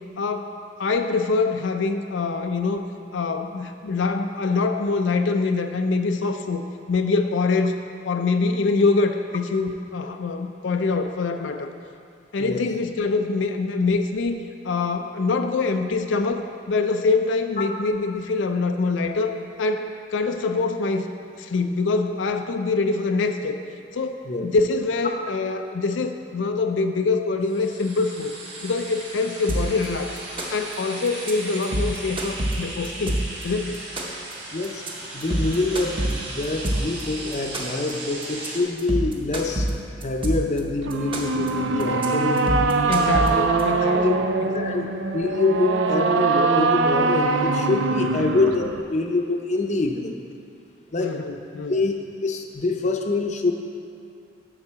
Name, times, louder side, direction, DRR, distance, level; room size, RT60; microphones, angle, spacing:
voice 1, 0.2-0.5 0.8-2.9 3.1-7.7 8.0-11.7 12.3-21.1 21.4-23.6 23.9-28.3 28.6-30.2 30.5-33.2 33.4-33.8 42.9-44.9 48.2-48.4 51.0-51.8, left 3 dB, 90° left, 6 dB, 0.5 m, -24 dB
sound 1, 27.4-38.6, right 2 dB, 70° right, 1.9 m, -37 dB
sound 2, 29.5-29.9 30.2-30.7 31.1-31.3 31.6-33.4 33.7-34.3 34.6-34.9 35.2-37.0 37.3-37.9 38.2-38.5 38.8-40.6 40.9-41.5 41.8-42.1 42.4-43.6, right 1 dB, 30° right, 0.9 m, -26 dB
voice 2, 34.5-34.8 35.1-39.7 40.0-42.5 44.0-44.2 44.5-44.9 45.1-50.1 50.9-51.2 51.7-53.5, left 3 dB, 40° left, 4 dB, 0.6 m, -25 dB
sound 3, 40.8-48.8, right 3 dB, 85° right, 0.5 m, -22 dB
10.0 x 3.8 x 7.4 m, 2.5 s
head